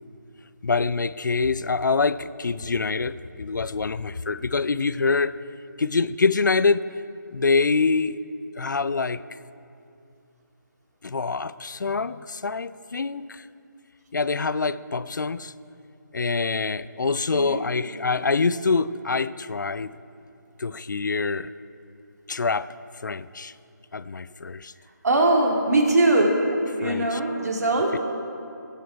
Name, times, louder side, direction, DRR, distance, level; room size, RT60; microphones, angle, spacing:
voice 1, 0.6-5.3 5.8-6.9 7.3-8.2 8.6-9.2 11.0-13.5 14.1-15.5 16.1-19.9 20.6-21.5 22.3-22.7 23.0-23.5 23.9-24.7 26.8-27.2 27.9-28.0, left 4 dB, 70° left, 15 dB, 0.5 m, -25 dB
voice 2, 17.3-17.6 25.0-26.4 26.8-27.9, right 2 dB, 55° right, 1 dB, 2.5 m, -21 dB
20.5 x 9.5 x 4.6 m, 2.6 s
figure-of-eight pair, 160°, 10 cm